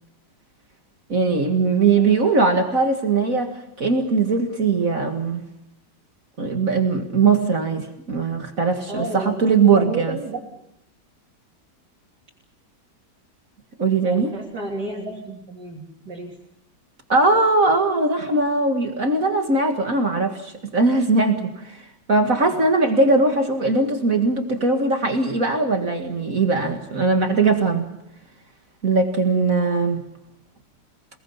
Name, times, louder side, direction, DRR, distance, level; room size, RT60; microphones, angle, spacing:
voice 1, 1.1-5.4 6.4-10.2 13.8-14.3 17.1-27.9 28.8-30.0, right 3 dB, 50° right, 4 dB, 2.4 m, -20 dB
voice 2, 8.9-10.4 14.0-16.3, right 2 dB, 70° right, -4 dB, 4.0 m, -31 dB
29.0 x 19.5 x 7.2 m, 0.81 s
omnidirectional pair, 1.8 m